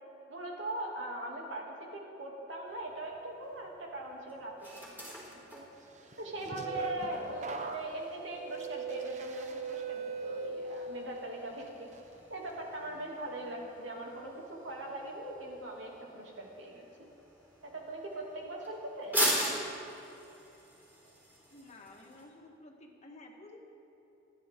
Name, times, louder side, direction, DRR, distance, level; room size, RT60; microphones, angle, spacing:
voice 1, 0.3-1.6 1.9-5.7 6.2-11.9 12.3-16.9 17.6-19.2, right 1 dB, 90° right, -2 dB, 2.7 m, -41 dB
Toaster start and stop, 2.7-22.2, equal, 10° right, 4.0 m, -41 dB
plastic feedback, 6.1-11.2 11.6-12.0, right 4 dB, 40° right, 0.9 m, -40 dB
voice 2, 21.5-23.6, left 2 dB, 40° left, 0 dB, 1.8 m, -52 dB
28.5 x 10.0 x 3.8 m, 3.0 s
head